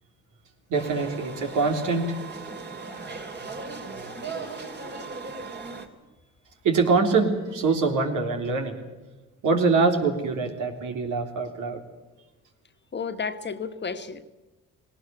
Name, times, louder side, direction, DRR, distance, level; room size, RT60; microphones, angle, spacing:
sound 1, 0.7-5.9, right 4 dB, 35° right, 2.8 m, -37 dB
voice 1, 0.7-2.2 6.6-8.8 9.4-11.8, right 4 dB, 85° right, 4 dB, 3.5 m, -24 dB
voice 2, 12.9-14.2, left 5 dB, 35° left, 8 dB, 1.5 m, -32 dB
19.0 x 19.0 x 9.4 m, 1.1 s
cardioid pair, 90°, 30 cm